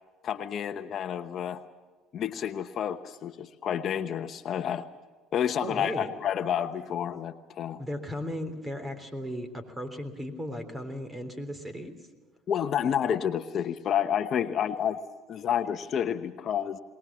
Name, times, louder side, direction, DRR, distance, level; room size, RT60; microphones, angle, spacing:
voice 1, 0.2-1.6 2.1-4.8 5.3-7.8 12.5-15.0 15.3-16.8, left 9 dB, 50° left, 9 dB, 1.0 m, -29 dB
voice 2, 5.6-6.1 7.8-11.9, equal, 15° right, 9 dB, 3.5 m, -36 dB
22.5 x 20.0 x 7.4 m, 1.4 s
supercardioid pair, 90°, 0 cm